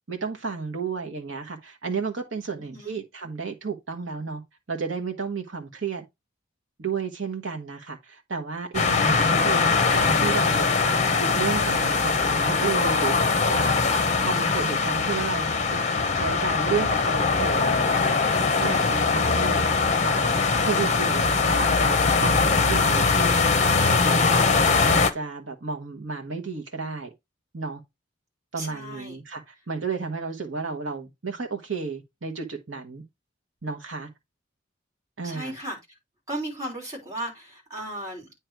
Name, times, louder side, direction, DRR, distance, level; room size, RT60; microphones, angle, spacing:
voice 1, 0.1-4.4 4.7-6.0 6.8-13.2 13.5-13.8 14.2-15.5 16.1-19.6 20.0-23.4 23.6-24.5 24.8-27.1 27.5-27.8 28.5-33.0 33.6-34.1 35.2-35.5, right 5 dB, 80° right, 1.1 m, -32 dB
voice 2, 2.5-3.0 28.5-29.2 35.2-35.8 36.3-38.3, right 1 dB, 20° right, 3.2 m, -35 dB
sound 1, 8.7-25.1, left 4 dB, 35° left, 0.8 m, -22 dB
9.1 x 3.2 x 4.5 m
head